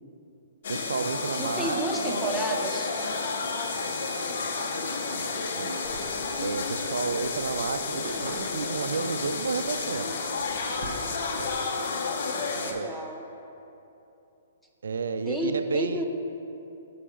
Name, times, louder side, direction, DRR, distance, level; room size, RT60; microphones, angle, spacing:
sound 1, 0.6-12.7, left 4 dB, 55° left, 0.7 m, -31 dB
voice 1, 0.7-2.7 4.7-5.3 5.5-5.8 6.4-10.1 12.5-12.9 14.8-16.1, right 5 dB, 90° right, 10 dB, 0.3 m, -32 dB
voice 2, 1.4-2.9 12.6-13.2 15.3-16.1, right 1 dB, ahead, 0 dB, 0.4 m, -31 dB
sound 2, 5.8-11.5, right 3 dB, 50° right, 0.6 m, -45 dB
5.7 x 4.6 x 6.3 m, 2.9 s
hypercardioid pair, 170°, 0 cm